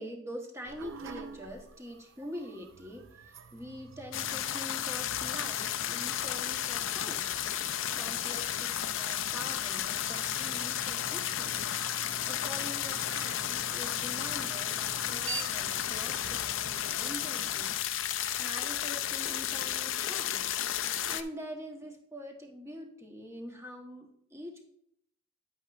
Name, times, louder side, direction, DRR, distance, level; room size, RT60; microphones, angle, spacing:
voice 1, 0.0-7.3 7.9-11.7 12.3-17.8 18.4-20.4 20.8-24.7, equal, 15° right, 2 dB, 1.1 m, -44 dB
sound 1, 0.6-18.5, right 4 dB, 75° right, 0.6 m, -49 dB
sound 2, 4.1-21.2, left 10 dB, 80° left, 0.5 m, -33 dB
9.7 x 8.2 x 2.5 m, 0.72 s
head